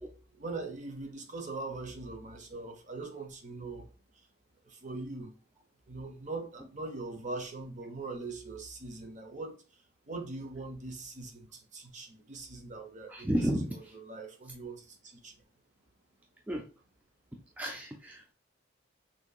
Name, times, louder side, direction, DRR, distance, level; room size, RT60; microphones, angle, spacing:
voice 1, 0.0-4.3 4.6-5.3 5.9-13.3 13.9-15.4, right 3 dB, 40° right, 0.9 m, -42 dB
voice 2, 13.1-14.0 16.5-16.7 17.6-18.3, equal, 10° right, 0.4 m, -32 dB
6.0 x 2.8 x 2.3 m
head